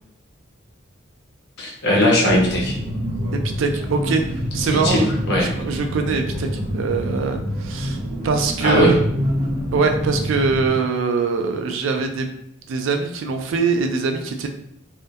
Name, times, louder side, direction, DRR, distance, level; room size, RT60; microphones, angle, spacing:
voice 1, 1.6-2.7 4.7-5.5 8.6-9.0, left 1 dB, 50° left, -3 dB, 0.7 m, -19 dB
sound 1, 2.2-10.7, equal, 50° right, 0.8 m, -27 dB
voice 2, 3.3-4.2 4.5-5.1 5.4-6.5 6.7-8.0 8.2-9.0 9.7-12.3 12.7-14.5, right 4 dB, 65° right, 5 dB, 0.3 m, -22 dB
2.2 x 2.1 x 2.7 m, 0.74 s
head